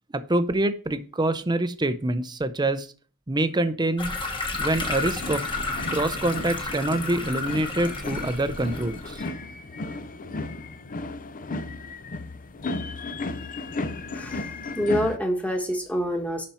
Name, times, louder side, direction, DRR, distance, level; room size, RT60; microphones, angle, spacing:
voice 1, 0.1-2.9 3.3-4.1 4.5-5.5 5.9-9.3, right 1 dB, 20° right, 12 dB, 0.6 m, -26 dB
sound 1, 4.0-9.3, left 3 dB, 20° left, 1.3 m, -32 dB
sound 2, 4.7-15.2, left 2 dB, 35° left, 0.6 m, -35 dB
voice 2, 14.8-16.5, equal, 5° left, 3 dB, 1.4 m, -26 dB
11.0 x 4.3 x 4.3 m, 0.40 s
head